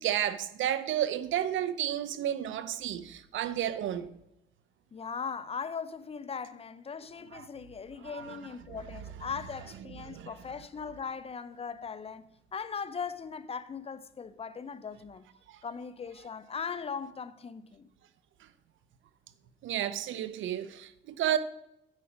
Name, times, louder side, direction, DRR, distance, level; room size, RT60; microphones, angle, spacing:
voice 1, 0.0-4.1 7.3-7.5 8.1-8.4 8.7-8.8 10.1-10.3 15.5-15.6 19.6-21.4, right 11 dB, 75° right, 0.8 m, -32 dB
voice 2, 4.9-15.3 15.6-17.9, left 6 dB, 30° left, 0.6 m, -39 dB
9.0 x 4.9 x 7.0 m
cardioid pair, 90°, 20 cm